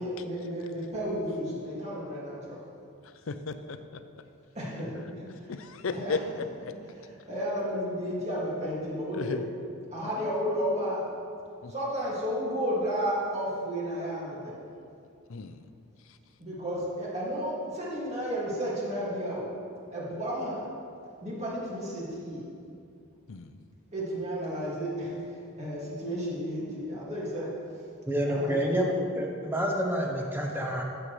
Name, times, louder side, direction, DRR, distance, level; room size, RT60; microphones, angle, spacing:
voice 1, 0.0-2.6 4.5-5.6 5.9-6.2 6.9-9.4 9.9-11.0 11.7-14.5 16.4-19.5 19.9-20.6 21.2-22.4 23.9-25.2 25.6-27.5 28.2-28.6, equal, 30° right, -6 dB, 2.2 m, -32 dB
voice 2, 3.3-3.8 5.5-6.2 9.1-9.5 11.6-11.7 15.3-15.6 23.3-23.6, left 4 dB, 65° left, 10 dB, 0.5 m, -34 dB
voice 3, 28.1-30.8, equal, 10° right, 0 dB, 0.9 m, -28 dB
13.5 x 7.3 x 3.2 m, 2.5 s
head